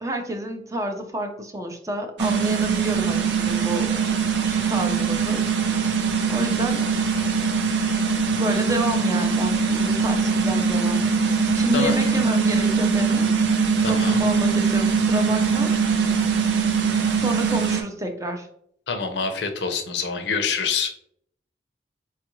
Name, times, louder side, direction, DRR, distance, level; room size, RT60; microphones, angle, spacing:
voice 1, 0.0-3.9 4.4-5.4 6.3-6.8 8.4-11.0 11.5-13.3 13.9-15.7 17.2-18.5, equal, 20° right, 4 dB, 0.5 m, -29 dB
sound 1, 2.2-17.8, right 5 dB, 85° right, 0.5 m, -22 dB
voice 2, 11.7-12.1 13.8-14.2 18.9-20.9, left 5 dB, 80° left, 6 dB, 0.6 m, -26 dB
4.3 x 2.4 x 2.9 m, 0.68 s
head